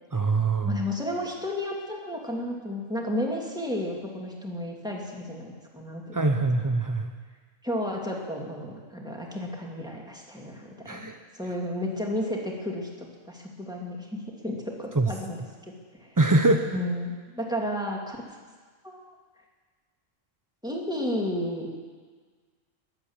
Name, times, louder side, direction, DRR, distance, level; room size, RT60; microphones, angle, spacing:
voice 1, 0.1-0.8 6.1-7.1 10.9-11.2 15.0-15.1 16.2-16.6, right 3 dB, 30° right, 5 dB, 0.3 m, -23 dB
voice 2, 0.6-6.7 7.6-15.4 16.0-16.1 16.7-18.2 18.8-19.0 20.6-21.7, left 1 dB, 5° right, -1 dB, 2.4 m, -32 dB
21.0 x 8.2 x 7.2 m, 1.5 s
omnidirectional pair, 1.3 m